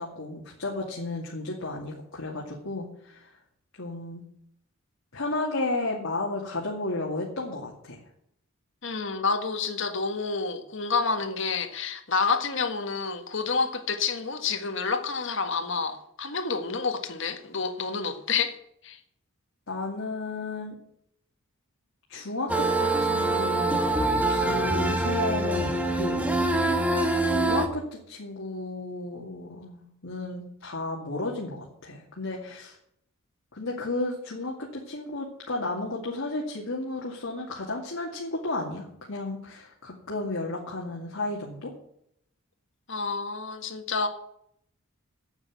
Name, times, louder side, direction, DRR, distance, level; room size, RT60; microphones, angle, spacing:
voice 1, 0.0-3.3 3.8-4.2 5.1-8.0 19.7-20.7 22.1-23.8 24.3-26.2 27.2-32.8 33.5-41.7, left 2 dB, 80° left, 2.5 m, -33 dB
voice 2, 8.8-18.6 18.8-19.0 42.9-44.1, left 4 dB, 60° left, 1.7 m, -29 dB
sound 1, 22.5-27.7, right 2 dB, 5° right, 1.2 m, -25 dB
9.8 x 8.5 x 9.5 m
head